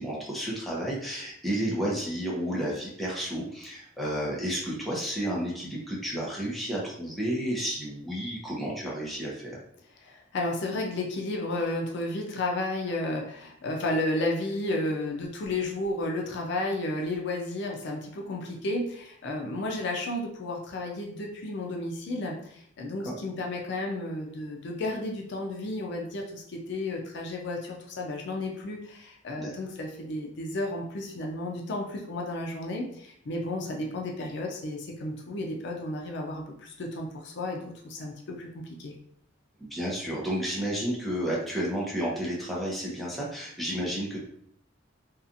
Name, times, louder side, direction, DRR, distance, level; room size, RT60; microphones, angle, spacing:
voice 1, 0.0-9.6 23.1-23.2 29.4-29.5 39.6-44.2, right 1 dB, ahead, -6 dB, 0.7 m, -31 dB
voice 2, 10.0-39.0, left 2 dB, 65° left, 0 dB, 0.5 m, -32 dB
2.8 x 2.3 x 2.5 m, 0.67 s
head